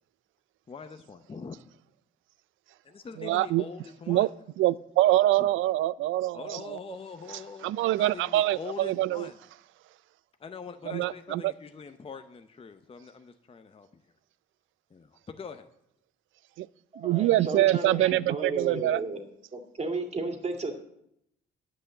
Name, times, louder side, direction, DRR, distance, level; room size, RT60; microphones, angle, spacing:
voice 1, 0.7-1.6 2.8-4.3 5.4-5.5 6.3-9.4 10.4-14.0 14.9-15.7, left 5 dB, 30° left, 0.7 m, -43 dB
voice 2, 3.2-3.6 4.1-4.3 4.6-6.8 7.6-9.3 10.9-11.5 16.6-16.7 17.0-19.0, right 15 dB, 80° right, 0.4 m, -25 dB
voice 3, 16.9-19.2 19.5-20.7, right 3 dB, 35° right, 2.2 m, -33 dB
10.0 x 6.3 x 7.9 m
cardioid pair, 90°, 20 cm